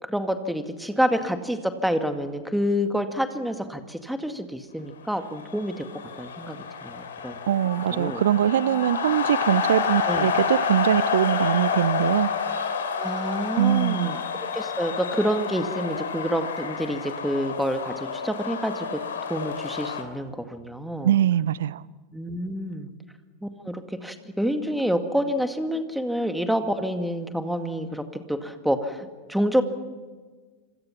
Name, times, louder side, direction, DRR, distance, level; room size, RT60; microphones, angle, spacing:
voice 1, 0.0-7.4 7.9-8.2 10.1-10.3 13.0-14.2 14.5-19.0 19.3-21.1 22.1-22.9 23.4-29.6, equal, ahead, 2.1 m, -28 dB
sound 1, 5.2-20.0, left 6 dB, 65° left, 3.1 m, -29 dB
voice 2, 7.5-12.3 13.6-14.2 21.0-21.8, right 11 dB, 60° right, 0.7 m, -22 dB
26.5 x 26.0 x 6.0 m
figure-of-eight pair, 90°, 0 cm